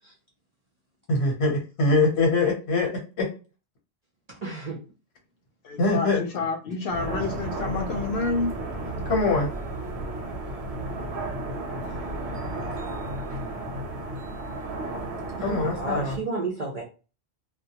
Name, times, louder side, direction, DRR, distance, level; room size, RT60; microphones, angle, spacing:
voice 1, 1.1-3.3 5.8-6.2 9.1-9.5 15.4-16.2, left 3 dB, 85° left, -1 dB, 1.1 m, -23 dB
voice 2, 4.4-4.8 15.3-16.8, right 2 dB, 50° right, -2 dB, 0.5 m, -31 dB
voice 3, 5.6-8.5, left 3 dB, 65° left, 4 dB, 0.7 m, -29 dB
sound 1, 6.9-16.2, right 2 dB, 85° right, 0.9 m, -33 dB
2.2 x 2.2 x 2.7 m, 0.33 s
omnidirectional pair, 1.1 m